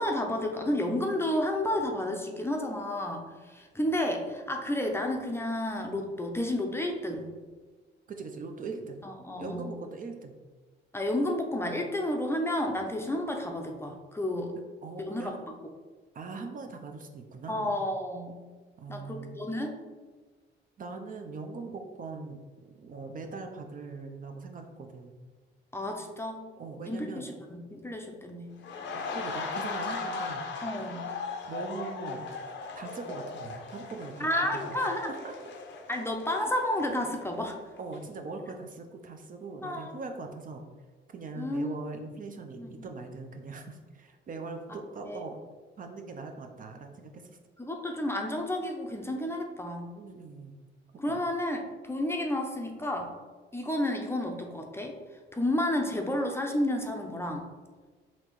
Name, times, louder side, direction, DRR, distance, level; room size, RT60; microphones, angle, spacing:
voice 1, 0.0-7.3 9.0-9.7 10.9-14.5 15.0-15.3 17.5-18.4 18.9-19.8 25.7-26.4 26.9-28.5 30.6-31.1 34.2-35.1 35.9-37.6 39.6-40.0 41.4-41.7 42.6-42.8 45.1-45.2 47.6-49.9 51.0-53.1 53.5-55.0 55.3-57.5, left 1 dB, 10° left, 2 dB, 0.5 m, -31 dB
voice 2, 8.1-9.0 9.4-10.4 14.8-15.4 16.1-17.8 18.8-19.4 20.8-25.2 26.6-27.3 28.9-30.4 31.5-32.3 32.7-35.3 37.8-40.7 41.1-45.4 45.8-47.4 50.0-50.6 51.1-51.2, right 3 dB, 45° right, 4 dB, 0.5 m, -41 dB
sound 1, 28.6-37.5 37.8-38.0, left 4 dB, 65° left, 0.5 m, -38 dB
4.2 x 2.8 x 3.0 m, 1.3 s
cardioid pair, 90°, 20 cm